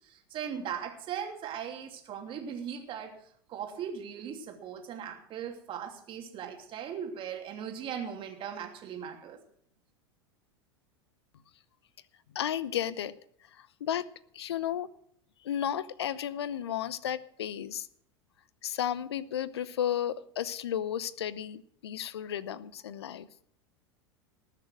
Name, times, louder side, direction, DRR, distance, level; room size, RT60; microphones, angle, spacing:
voice 1, 0.0-3.1 3.5-9.4, right 8 dB, 40° right, 3 dB, 2.9 m, -39 dB
voice 2, 12.3-13.1 13.5-14.0 14.3-14.9 15.4-17.9 18.6-23.3, left 10 dB, 75° left, 18 dB, 0.7 m, -33 dB
19.5 x 6.8 x 6.3 m, 0.66 s
hypercardioid pair, 85°, 14 cm